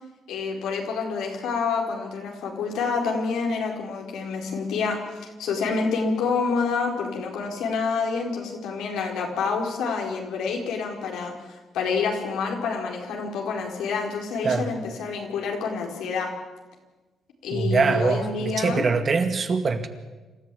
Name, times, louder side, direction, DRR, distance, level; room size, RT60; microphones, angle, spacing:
voice 1, 0.3-5.0 5.4-11.3 11.7-16.3 17.4-18.9, left 5 dB, 85° left, 4.5 m, -27 dB
voice 2, 17.5-19.9, right 4 dB, 45° right, 2.2 m, -23 dB
27.0 x 14.0 x 8.5 m
cardioid pair, 90°, 0 cm